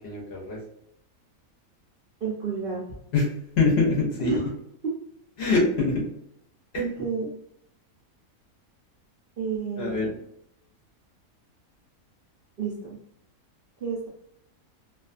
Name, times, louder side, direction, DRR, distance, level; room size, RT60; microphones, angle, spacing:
voice 1, 0.0-0.6 3.1-4.4 5.4-6.1 9.8-10.1, left 3 dB, 60° left, -2 dB, 0.8 m, -24 dB
voice 2, 2.2-3.0 4.2-4.5 4.8-4.9 6.7-7.3 9.4-10.2 12.6-13.0 13.8-14.1, right 5 dB, 65° right, -4 dB, 0.5 m, -30 dB
2.4 x 2.3 x 2.4 m, 0.76 s
omnidirectional pair, 1.5 m